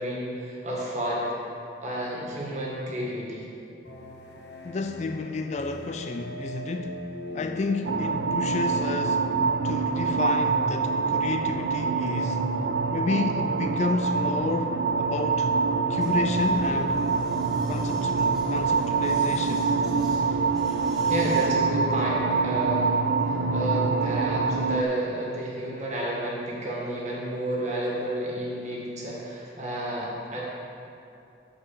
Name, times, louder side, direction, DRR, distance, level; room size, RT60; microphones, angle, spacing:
voice 1, 0.0-1.3 1.8-3.4 21.1-23.0 23.2-30.4, right 1 dB, 40° right, 1.8 m, -31 dB
sound 1, 3.8-10.7, left 1 dB, 70° left, 0.9 m, -40 dB
voice 2, 4.6-7.1 7.3-9.3 9.6-12.4 12.9-15.5 15.9-17.0 17.7-19.7, left 3 dB, 40° left, 0.3 m, -31 dB
sound 2, 7.8-24.8, right 4 dB, 70° right, 0.4 m, -25 dB
Vehicle, 15.9-21.5, equal, ahead, 1.3 m, -43 dB
8.6 x 4.6 x 7.3 m
head